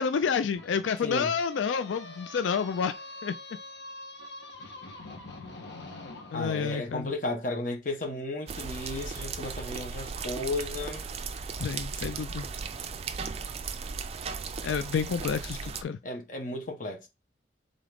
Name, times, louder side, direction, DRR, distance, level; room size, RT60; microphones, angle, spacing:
voice 1, 0.0-2.9 3.2-3.3 6.3-7.1 11.6-12.5 14.6-16.0, left 6 dB, 90° left, 0.4 m, -29 dB
sound 1, 0.5-6.8, left 2 dB, 70° left, 1.2 m, -44 dB
voice 2, 1.0-1.3 6.3-11.0 16.0-17.1, left 2 dB, 45° left, 1.1 m, -34 dB
sound 2, 8.5-15.8, right 5 dB, 35° right, 0.4 m, -36 dB
3.8 x 3.7 x 3.4 m
head